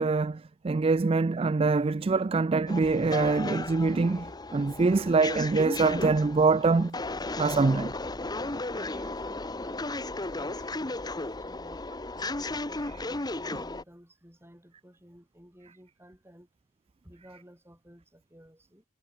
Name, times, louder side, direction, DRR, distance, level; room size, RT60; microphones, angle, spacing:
voice 1, 0.0-7.0 7.4-7.9, right 4 dB, 30° right, 0.4 m, -24 dB
sound 1, 2.7-13.8, left 2 dB, 20° left, 1.1 m, -35 dB
voice 2, 4.5-5.1 8.7-16.5 17.0-18.8, equal, 10° right, 6.9 m, -54 dB
head